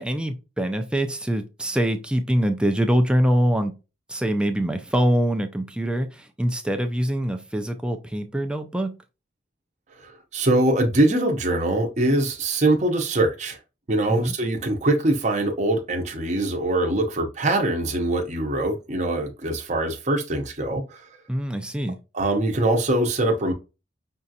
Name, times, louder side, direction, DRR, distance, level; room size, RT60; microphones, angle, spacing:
voice 1, 0.0-3.7 4.1-9.0 14.1-14.3 21.3-22.0, equal, 5° right, 0.4 m, -24 dB
voice 2, 10.0-13.6 13.9-21.1 22.1-23.5, right 1 dB, 40° right, 0.8 m, -23 dB
5.4 x 2.4 x 2.7 m
head